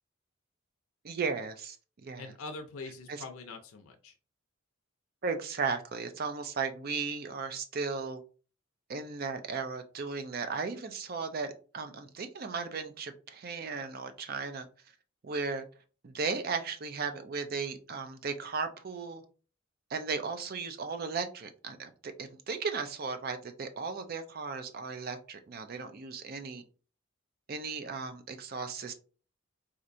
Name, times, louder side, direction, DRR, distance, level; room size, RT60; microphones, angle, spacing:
voice 1, 1.0-1.8 2.0-2.3 3.1-3.2 5.2-8.2 8.9-14.7 15.2-15.6 16.0-19.2 19.9-26.6 27.5-28.9, right 4 dB, 45° right, 0.4 m, -36 dB
voice 2, 2.2-4.1, left 3 dB, 85° left, 0.5 m, -43 dB
4.2 x 2.5 x 2.5 m
head